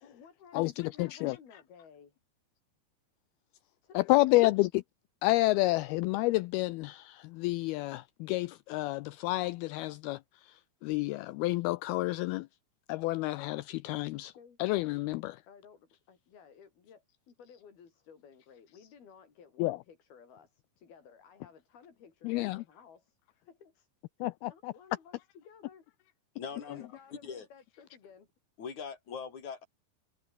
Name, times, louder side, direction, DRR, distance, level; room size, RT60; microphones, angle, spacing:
voice 1, 0.0-2.2 3.8-4.5 14.3-14.6 15.5-23.9 24.5-25.9 26.5-28.3, left 6 dB, 60° left, 5.9 m, -56 dB
voice 2, 0.5-1.4 4.0-4.7 5.2-10.5 10.8-12.5 12.9-14.3 14.6-15.4 19.6-19.8 22.2-22.6 24.2-24.7, left 20 dB, 85° left, 2.2 m, -29 dB
voice 3, 26.4-27.5 28.6-29.7, left 6 dB, 45° left, 6.2 m, -42 dB
omnidirectional pair, 5.0 m